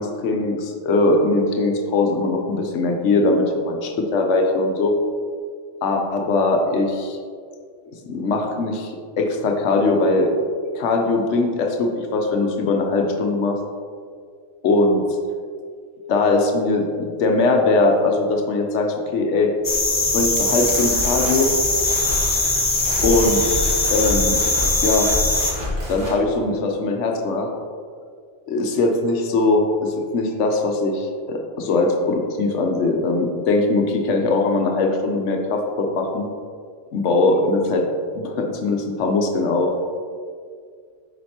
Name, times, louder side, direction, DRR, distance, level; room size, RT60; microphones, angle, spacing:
voice 1, 0.0-4.9 5.8-7.2 8.1-10.3 10.7-13.6 14.6-15.0 16.1-19.5 20.1-21.5 23.0-23.4 23.9-24.4 24.8-25.1 25.9-27.5 28.5-36.3 36.9-37.8 38.1-39.7, left 2 dB, 85° left, 3 dB, 1.1 m, -20 dB
sound 1, 19.6-25.5, left 2 dB, 25° left, 0.5 m, -21 dB
sound 2, 20.6-26.2, left 1 dB, 75° right, 2.0 m, -29 dB
7.6 x 5.0 x 2.8 m, 2.1 s
omnidirectional pair, 1.2 m